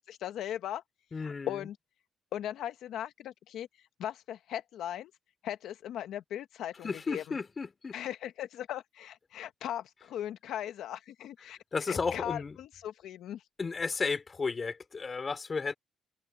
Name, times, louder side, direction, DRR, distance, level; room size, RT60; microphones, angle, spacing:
voice 1, 0.1-0.8 1.2-1.8 2.3-5.1 5.4-7.2 7.9-11.6 11.9-13.4, left 11 dB, 80° left, 0.8 m, -38 dB
voice 2, 1.1-1.7 6.8-8.0 11.7-12.6 13.6-15.7, left 4 dB, 35° left, 3.8 m, -33 dB
cardioid pair, 90°, 0 cm